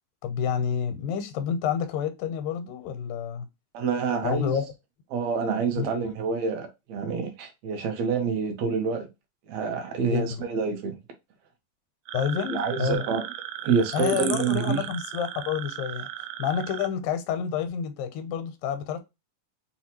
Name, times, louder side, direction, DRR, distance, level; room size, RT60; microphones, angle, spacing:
voice 1, 0.2-3.5 4.2-4.7 5.8-5.9 10.1-10.4 12.1-13.0 13.9-16.1 16.4-19.0, left 7 dB, 90° left, 2.3 m, -29 dB
voice 2, 3.7-4.6 5.1-9.1 9.5-11.0 12.5-13.3 13.6-14.8, right 5 dB, 65° right, 1.8 m, -27 dB
sound 1, 12.1-16.9, right 12 dB, 85° right, 2.2 m, -36 dB
5.8 x 2.4 x 2.9 m
omnidirectional pair, 4.0 m